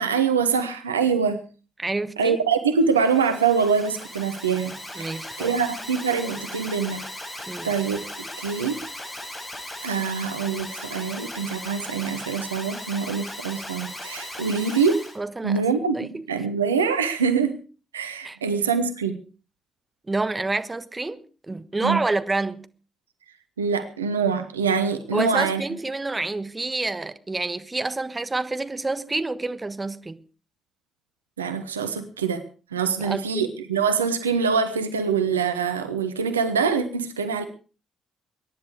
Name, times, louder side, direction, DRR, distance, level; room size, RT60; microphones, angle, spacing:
voice 1, 0.0-1.4 2.2-7.0 7.6-8.0 8.4-8.8 9.8-15.1 15.4-17.6 17.9-19.2 21.8-22.0 23.6-25.6 31.4-32.4 32.7-37.5, right 6 dB, 90° right, 1.0 m, -24 dB
voice 2, 1.8-2.4 4.9-5.6 7.5-7.7 15.2-15.7 15.9-16.3 18.2-18.4 20.1-21.2 21.5-22.7 25.1-30.2 33.0-33.2, right 2 dB, 25° right, 1.3 m, -28 dB
Alarm, 2.8-15.2, left 1 dB, 20° left, 7.4 m, -37 dB
22.0 x 10.5 x 4.8 m
figure-of-eight pair, 40°, 0 cm